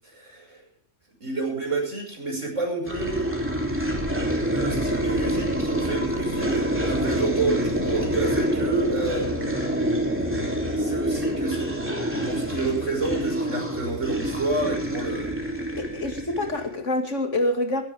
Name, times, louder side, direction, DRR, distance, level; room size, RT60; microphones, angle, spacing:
voice 1, 0.1-0.6 1.2-3.4 4.5-11.7 12.2-15.3, right 3 dB, 85° right, 6.3 m, -29 dB
sound 1, 2.9-16.7, equal, 10° right, 3.3 m, -27 dB
voice 2, 15.8-17.8, left 1 dB, 80° left, 2.7 m, -26 dB
17.0 x 17.0 x 3.6 m
omnidirectional pair, 1.2 m